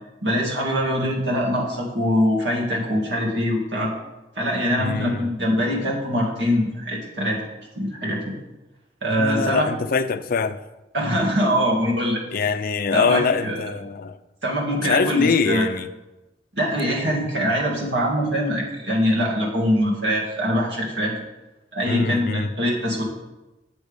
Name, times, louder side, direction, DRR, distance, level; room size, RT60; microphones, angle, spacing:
voice 1, 0.2-3.9 4.4-7.4 7.7-8.3 9.0-9.7 10.9-12.2 12.9-13.6 14.4-15.6 16.5-21.2 21.7-23.0, equal, 70° right, -3 dB, 2.4 m, -23 dB
voice 2, 4.8-5.3 9.2-10.6 12.3-14.2 14.8-15.9 21.9-22.5, left 5 dB, 55° left, 12 dB, 0.5 m, -23 dB
8.1 x 6.4 x 5.2 m, 1.0 s
head